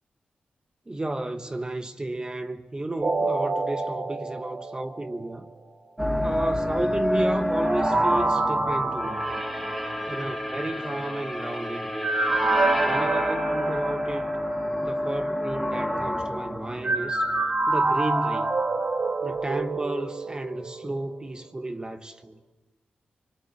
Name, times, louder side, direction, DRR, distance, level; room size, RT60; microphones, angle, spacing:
voice 1, 0.9-5.5 6.2-9.3 10.1-12.1 12.8-14.3 14.8-17.3 17.7-18.6 19.2-22.4, right 2 dB, 25° right, 1.2 m, -32 dB
sound 1, 3.0-5.3 7.6-10.6 12.0-14.8 16.8-21.3 21.7-21.8, right 2 dB, 50° right, 3.6 m, -27 dB
sound 2, 6.0-18.1, left 1 dB, ahead, 2.8 m, -29 dB
24.5 x 21.5 x 7.2 m
cardioid pair, 70°, 3 cm